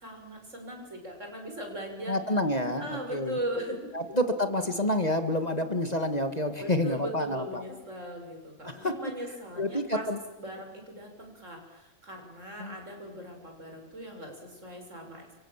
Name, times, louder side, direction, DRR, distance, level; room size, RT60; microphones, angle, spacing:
voice 1, 0.0-2.2 2.8-3.8 6.5-10.1 10.4-11.6 12.1-14.3 14.6-15.2, right 1 dB, 60° right, 3 dB, 6.8 m, -39 dB
voice 2, 2.1-2.8 3.1-3.4 3.9-7.6 8.6-9.0 9.6-10.2 12.6-12.7, left 1 dB, 30° left, 7 dB, 2.0 m, -28 dB
29.5 x 25.0 x 7.4 m, 0.97 s
omnidirectional pair, 1.4 m